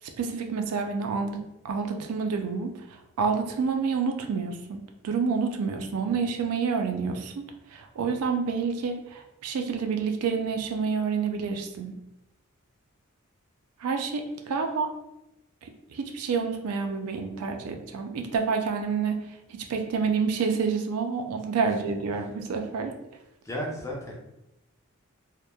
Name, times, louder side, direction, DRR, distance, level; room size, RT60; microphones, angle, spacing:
voice 1, 0.2-7.4 7.7-12.0 13.8-14.9 15.6-19.2 19.5-22.9, right 5 dB, 85° right, 4 dB, 0.4 m, -28 dB
voice 2, 23.4-24.1, equal, 15° left, -2 dB, 0.4 m, -34 dB
2.9 x 2.1 x 2.2 m, 0.88 s
head